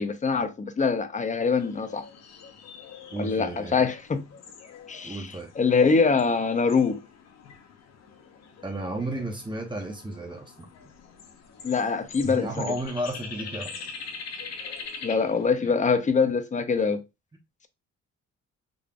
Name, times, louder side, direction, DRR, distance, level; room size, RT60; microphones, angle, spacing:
voice 1, 0.0-2.1 3.2-4.2 4.9-5.2 5.6-7.0 11.6-12.6 15.0-17.0, left 5 dB, 25° left, 0.6 m, -24 dB
sound 1, 1.6-15.5, left 5 dB, 60° left, 0.8 m, -44 dB
voice 2, 3.1-3.8 5.0-5.5 8.6-10.7 12.2-13.7 15.6-15.7, right 1 dB, 15° right, 0.9 m, -33 dB
3.8 x 3.3 x 2.3 m
cardioid pair, 90°, 30 cm